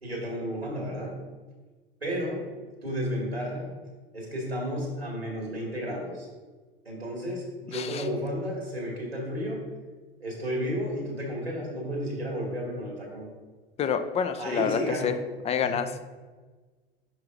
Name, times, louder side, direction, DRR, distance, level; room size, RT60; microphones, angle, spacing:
voice 1, 0.0-1.2 2.0-2.4 2.8-3.7 4.1-6.3 6.9-9.6 10.2-13.3 14.4-15.2 15.6-15.7, equal, 85° right, -2 dB, 2.1 m, -32 dB
voice 2, 7.7-8.0 13.8-15.1 15.4-16.1, left 7 dB, 20° left, 9 dB, 0.5 m, -28 dB
10.5 x 4.7 x 2.6 m, 1.3 s
figure-of-eight pair, 80°, 30 cm